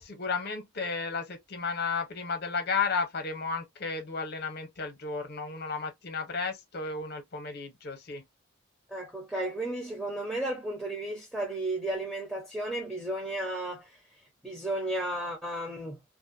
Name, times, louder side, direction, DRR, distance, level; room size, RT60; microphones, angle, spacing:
voice 1, 0.0-8.2, left 4 dB, 50° left, 0.7 m, -33 dB
voice 2, 8.9-14.0 14.4-16.0, right 1 dB, 5° right, 0.6 m, -33 dB
2.5 x 2.1 x 2.5 m
head